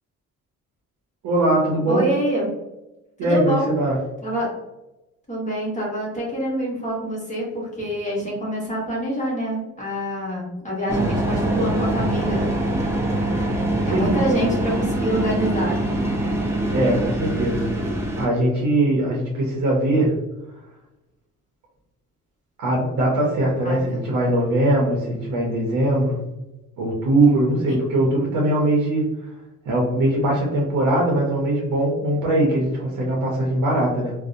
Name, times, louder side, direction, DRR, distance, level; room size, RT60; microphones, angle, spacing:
voice 1, 1.2-2.1 3.2-4.0 13.9-14.1 16.7-17.7 18.2-20.1 22.6-26.2 26.8-29.1 29.7-34.1, right 1 dB, 80° right, -2 dB, 0.6 m, -21 dB
voice 2, 1.9-2.5 3.2-3.7 4.2-4.5 5.3-12.5 13.8-15.8 23.6-24.0, right 1 dB, 25° left, -4 dB, 0.9 m, -26 dB
sound 1, 10.9-18.3, right 1 dB, 10° right, 0.5 m, -23 dB
2.6 x 2.1 x 2.5 m, 0.98 s
cardioid pair, 90°, 30 cm